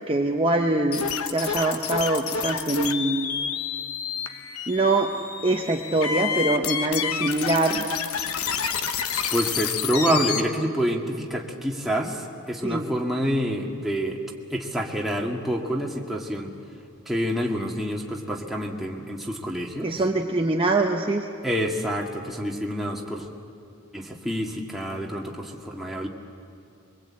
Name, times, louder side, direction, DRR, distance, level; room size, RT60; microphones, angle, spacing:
voice 1, 0.1-3.4 4.7-5.1 5.4-7.8 12.6-12.8 19.8-21.3, right 2 dB, 25° right, 2 dB, 0.9 m, -24 dB
sound 1, 0.9-10.4, left 7 dB, 75° left, 1.1 m, -29 dB
voice 2, 9.3-14.2 14.5-16.5 17.1-20.0 21.4-23.3 23.9-26.1, equal, ahead, -1 dB, 1.9 m, -27 dB
23.0 x 23.0 x 8.7 m, 2.5 s
head